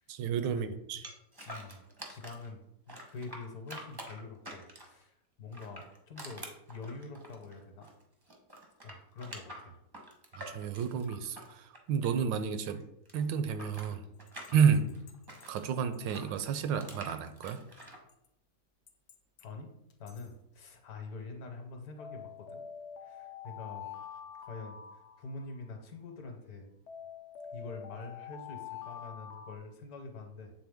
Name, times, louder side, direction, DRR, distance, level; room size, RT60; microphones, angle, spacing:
voice 1, 0.1-1.0 10.3-12.8 13.1-14.0 14.5-14.8 15.5-17.6, right 7 dB, 85° right, 10 dB, 1.3 m, -30 dB
sound 1, 1.0-2.5 2.9-5.0 5.5-8.0 8.3-12.4 12.7-15.6 16.1-18.0, right 1 dB, 30° right, 0.4 m, -47 dB
voice 2, 1.5-2.6 2.9-7.9 8.8-9.7 14.8-14.9 19.4-19.7 20.0-22.6 23.0-23.9 24.4-26.7 27.5-30.5, left 3 dB, 60° left, 4 dB, 1.2 m, -45 dB
sound 2, 14.3-16.2 16.6-16.7 17.1-17.2 17.8-18.3 18.9-19.4 19.9-20.3 22.0-25.7 26.9-29.6, left 8 dB, 80° left, 0.6 m, -46 dB
7.7 x 3.6 x 3.5 m, 0.82 s
omnidirectional pair, 2.0 m